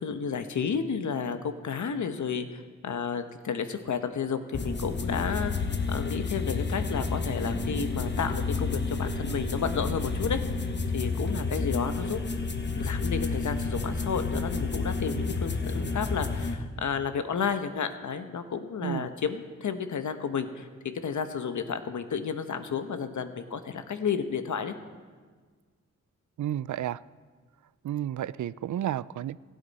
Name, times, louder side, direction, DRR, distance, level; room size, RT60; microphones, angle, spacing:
voice 1, 0.0-5.5 5.9-10.4 10.9-12.2 12.8-20.7 21.0-24.7, left 6 dB, 70° left, 9 dB, 1.1 m, -32 dB
sound 1, 4.5-16.5, left 4 dB, 35° left, 1.2 m, -30 dB
sound 2, 6.9-14.3, left 1 dB, 15° left, 1.3 m, -45 dB
voice 2, 26.4-27.0 27.8-29.4, right 11 dB, 70° right, 19 dB, 0.4 m, -31 dB
25.5 x 9.1 x 4.2 m, 1.5 s
cardioid pair, 75°, 30 cm